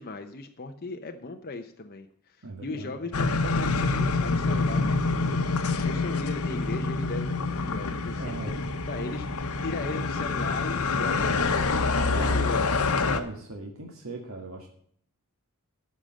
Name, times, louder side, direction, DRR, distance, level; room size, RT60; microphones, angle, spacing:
voice 1, 0.0-2.4 2.6-5.4 5.8-8.4 8.9-9.3 9.6-11.6 12.1-12.7, left 3 dB, 45° left, 4 dB, 0.8 m, -37 dB
voice 2, 2.4-3.0 8.2-8.6 12.1-12.7 13.0-14.7, right 2 dB, 70° right, 0 dB, 1.7 m, -38 dB
sound 1, 3.1-13.2, left 3 dB, 85° left, 1.0 m, -26 dB
13.0 x 5.1 x 7.7 m, 0.62 s
head